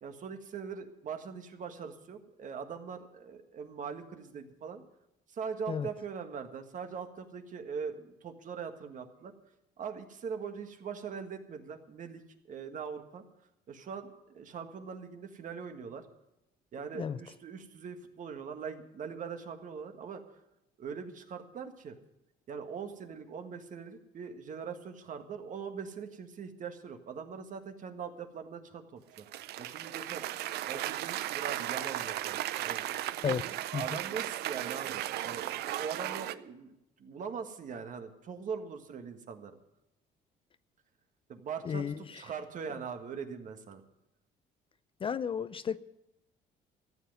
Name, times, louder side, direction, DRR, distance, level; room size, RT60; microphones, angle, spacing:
voice 1, 0.0-4.8 5.3-9.3 9.8-13.2 13.7-16.0 16.7-20.2 20.8-22.0 22.5-29.2 29.6-30.2 30.7-32.9 33.2-39.6 41.3-43.8, right 6 dB, 50° right, 6 dB, 1.7 m, -41 dB
Cheering / Applause, 29.2-36.3, right 14 dB, 75° right, 0.6 m, -36 dB
voice 2, 45.0-45.8, left 7 dB, 30° left, 15 dB, 0.4 m, -32 dB
14.0 x 7.9 x 9.2 m, 0.90 s
cardioid pair, 110°, 17 cm